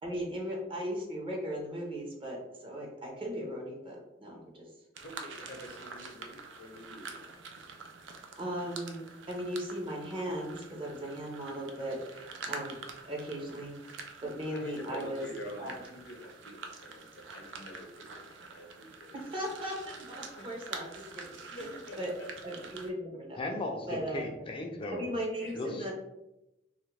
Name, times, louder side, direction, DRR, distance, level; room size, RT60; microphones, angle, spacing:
voice 1, 0.0-4.7 8.4-12.8 13.0-13.7 14.2-15.3 15.6-15.7 19.1-21.6 22.0-22.1 22.4-23.4 23.9-24.3 24.9-25.9, equal, 30° right, -1 dB, 0.7 m, -37 dB
sound 1, 4.9-22.9, right 4 dB, 85° right, 0.4 m, -46 dB
voice 2, 5.0-7.3 14.5-19.2 20.3-20.7 21.6-22.3 25.4-25.9, left 1 dB, 80° left, 1 dB, 0.7 m, -47 dB
voice 3, 23.4-25.0 25.5-25.9, left 2 dB, 30° left, 3 dB, 0.4 m, -36 dB
3.0 x 2.4 x 3.2 m, 0.92 s
head